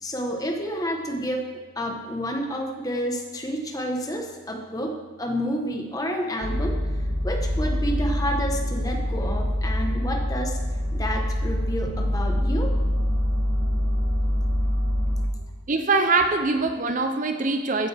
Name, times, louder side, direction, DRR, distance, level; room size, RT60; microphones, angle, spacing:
voice 1, 0.0-1.5 1.8-10.6 10.9-12.7, equal, 15° left, 3 dB, 1.1 m, -30 dB
sound 1, 6.4-15.3, equal, 55° right, 1.2 m, -25 dB
voice 2, 15.7-17.9, right 3 dB, 40° right, 7 dB, 0.6 m, -23 dB
15.0 x 9.0 x 3.4 m, 1.3 s
head